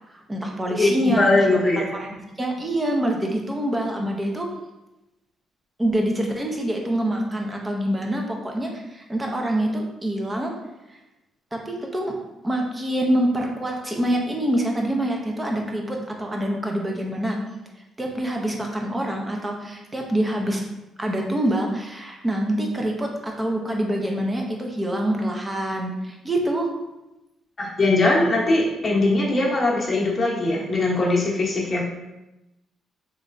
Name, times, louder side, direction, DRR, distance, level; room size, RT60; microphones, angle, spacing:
voice 1, 0.1-1.6 2.0-2.1 2.4-4.5 5.8-10.5 11.5-12.1 12.4-17.4 18.0-20.6 21.0-26.7, right 1 dB, 20° right, 1 dB, 0.7 m, -25 dB
voice 2, 0.7-1.9 27.6-31.8, left 2 dB, 30° left, -5 dB, 1.0 m, -21 dB
3.5 x 3.2 x 2.6 m, 0.96 s
cardioid pair, 90°, 0 cm